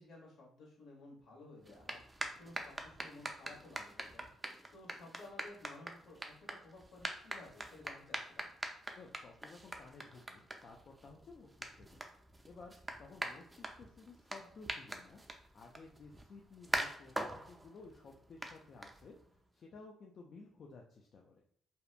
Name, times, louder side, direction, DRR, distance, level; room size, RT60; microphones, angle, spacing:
voice 1, 0.0-2.0 2.4-4.3 4.7-8.5, left 2 dB, 75° left, -3 dB, 1.1 m, -55 dB
sound 1, 1.6-19.4, right 1 dB, 15° right, 0.4 m, -44 dB
voice 2, 9.0-12.0 12.5-12.7 13.0-15.2 15.5-19.2 19.5-21.4, left 3 dB, 55° left, 0 dB, 0.4 m, -55 dB
2.8 x 2.1 x 2.4 m, 0.63 s
cardioid pair, 90°, 0 cm